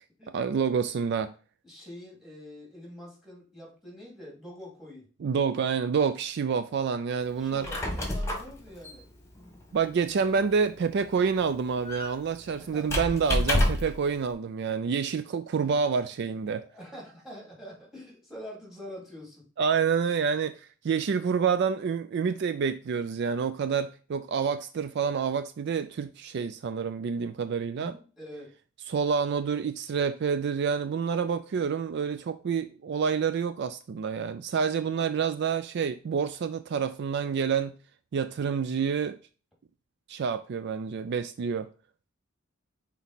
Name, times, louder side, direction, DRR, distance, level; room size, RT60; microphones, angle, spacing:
voice 1, 0.3-1.3 5.2-7.7 9.7-16.6 19.6-28.0 28.9-37.7 38.1-39.2 40.1-41.7, right 6 dB, 55° right, 0.4 m, -28 dB
voice 2, 1.6-5.1 7.4-9.1 9.8-10.4 12.6-13.0 15.5-15.6 16.5-19.5 27.7-28.5, equal, ahead, 2.5 m, -45 dB
Squeak, 7.4-14.0, left 1 dB, 15° left, 1.5 m, -31 dB
6.1 x 4.2 x 4.0 m
head